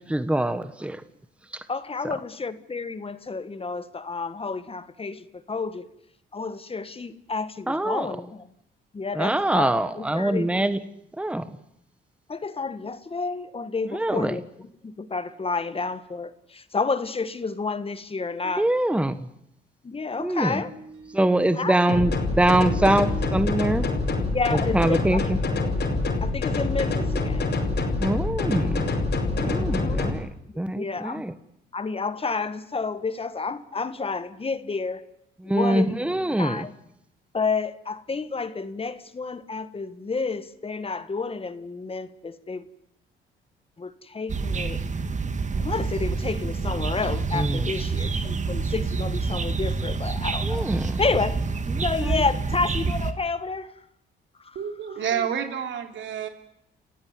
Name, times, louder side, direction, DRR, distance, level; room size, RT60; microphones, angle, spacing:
voice 1, 0.1-1.0 7.7-8.1 9.1-10.8 11.2-11.4 13.9-14.4 18.6-19.3 20.2-20.6 21.1-23.8 24.5-25.4 28.0-28.9 29.4-30.3 30.6-31.3 35.4-36.6 47.3-47.6 50.4-51.0 51.7-52.2, right 1 dB, 5° right, 12 dB, 1.3 m, -24 dB
voice 2, 1.7-5.9 6.3-8.5 8.9-10.5 12.3-18.7 19.8-20.7 21.5-21.8 24.3-25.2 25.6-25.7 26.2-27.5 29.3-30.1 30.6-31.2 31.7-35.1 35.4-36.7 37.3-42.6 43.8-44.8 45.6-50.7 51.0-51.4 51.8-53.7 54.4-54.6, left 4 dB, 30° left, 12 dB, 1.7 m, -30 dB
sound 1, 20.5-22.4 22.7-28.1, right 4 dB, 90° right, 6.5 m, -44 dB
sound 2, 21.9-30.1, left 3 dB, 55° left, 5.3 m, -26 dB
sound 3, 44.3-53.1, right 4 dB, 35° right, 2.1 m, -27 dB
voice 3, 54.5-56.3, right 8 dB, 70° right, 6 dB, 3.3 m, -29 dB
30.0 x 15.5 x 9.6 m, 0.76 s
cardioid pair, 90°, 20 cm